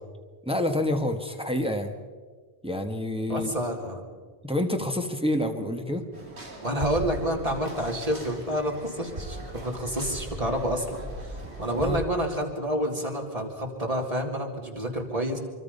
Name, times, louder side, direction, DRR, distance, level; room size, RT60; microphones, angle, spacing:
voice 1, 0.4-1.9 2.6-3.5 4.4-6.0 11.7-12.0, left 1 dB, 5° right, 4 dB, 1.5 m, -28 dB
voice 2, 3.3-4.0 6.6-15.4, equal, 35° right, 1 dB, 3.2 m, -29 dB
sound 1, 6.1-12.0, right 1 dB, 85° right, 3.9 m, -38 dB
25.0 x 24.5 x 5.5 m, 1.5 s
omnidirectional pair, 1.1 m